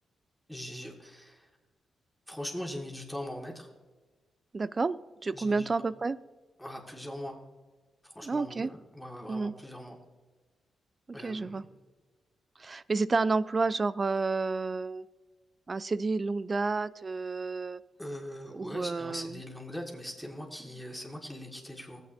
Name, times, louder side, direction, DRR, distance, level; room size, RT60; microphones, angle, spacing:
voice 1, 0.5-1.5 2.3-3.7 5.3-5.7 6.6-7.4 8.0-10.0 11.1-11.7 18.0-22.0, left 1 dB, 5° left, 0 dB, 1.9 m, -41 dB
voice 2, 4.5-5.0 5.2-6.2 8.2-8.7 9.3-9.5 11.1-11.6 12.6-15.0 15.7-17.8 18.5-19.4, right 3 dB, 40° right, 16 dB, 0.3 m, -30 dB
14.5 x 8.1 x 2.6 m, 1.3 s
supercardioid pair, 55°, 0 cm